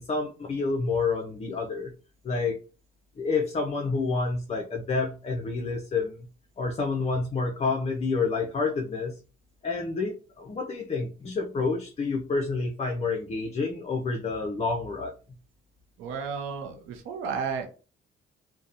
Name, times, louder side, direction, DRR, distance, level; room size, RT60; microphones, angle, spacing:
voice 1, 0.0-1.9 2.2-2.6 3.2-6.3 6.6-9.2 9.6-15.1, left 4 dB, 30° left, 1 dB, 0.5 m, -29 dB
voice 2, 16.0-17.7, right 6 dB, 85° right, 4 dB, 0.5 m, -32 dB
2.7 x 2.1 x 2.5 m, 0.35 s
cardioid pair, 90°, 20 cm